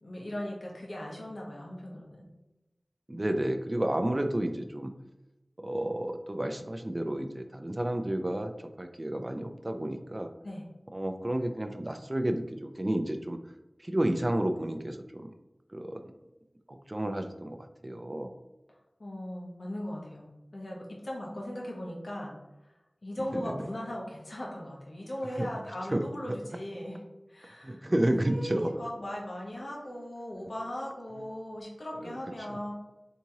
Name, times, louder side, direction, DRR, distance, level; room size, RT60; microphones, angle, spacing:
voice 1, 0.0-2.3 10.4-10.7 19.0-22.4 23.0-27.0 27.3-32.7, left 1 dB, 80° left, -3 dB, 0.9 m, -38 dB
voice 2, 3.1-4.9 5.6-8.5 8.8-10.3 10.9-13.4 13.8-15.3 15.7-16.0 16.7-17.6 17.8-18.3 23.3-23.6 25.4-25.5 25.9-26.0 27.6-28.7, right 1 dB, 40° right, 7 dB, 0.4 m, -31 dB
3.5 x 2.9 x 2.8 m, 1.0 s
wide cardioid pair, 40°, 0 cm